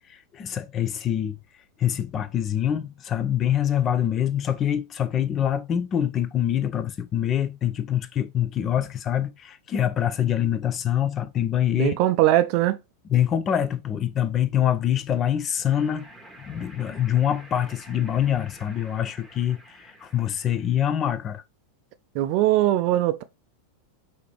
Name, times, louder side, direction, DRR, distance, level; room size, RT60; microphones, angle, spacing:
voice 1, 0.1-1.4 1.8-11.9 13.1-16.1 16.4-21.4, left 10 dB, 30° left, 0.5 m, -25 dB
voice 2, 11.7-12.8 22.1-23.2, right 14 dB, 45° right, 0.4 m, -21 dB
sound 1, 15.6-21.0, right 1 dB, 5° right, 1.2 m, -49 dB
5.0 x 2.8 x 3.2 m
figure-of-eight pair, 90°, 0 cm